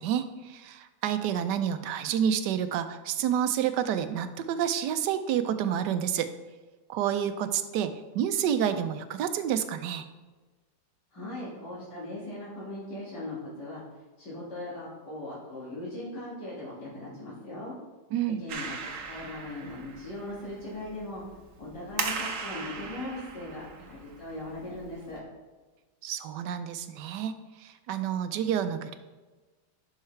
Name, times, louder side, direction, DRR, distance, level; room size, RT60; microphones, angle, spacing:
voice 1, 0.0-6.3 6.9-10.1 18.1-18.4 26.0-29.0, right 9 dB, 80° right, 10 dB, 1.2 m, -29 dB
voice 2, 11.1-13.8 14.2-17.7 18.4-18.8 19.1-21.2 21.6-25.2, left 1 dB, 70° left, -7 dB, 2.6 m, -39 dB
Clapping, 18.5-25.2, right 5 dB, 55° right, 1.1 m, -39 dB
11.5 x 5.6 x 3.2 m, 1.2 s
omnidirectional pair, 1.9 m